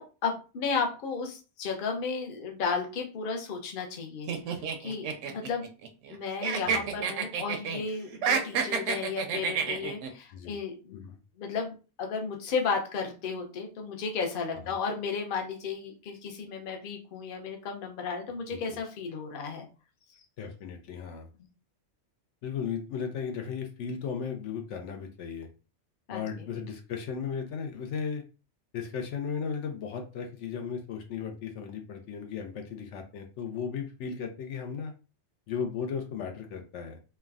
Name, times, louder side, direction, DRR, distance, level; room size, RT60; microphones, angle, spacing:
voice 1, 0.0-4.3 4.8-5.7 6.1-11.0 11.4-19.7 26.1-26.5, left 5 dB, 55° left, 2 dB, 0.7 m, -34 dB
sound 1, 4.3-6.2 6.4-7.8 8.1-10.1, right 6 dB, 85° right, 0.9 m, -29 dB
voice 2, 20.4-21.3 22.4-25.5 26.1-28.2 28.7-34.9 35.5-37.0, left 6 dB, 80° left, 4 dB, 0.9 m, -36 dB
3.3 x 2.1 x 2.3 m, 0.33 s
omnidirectional pair, 1.2 m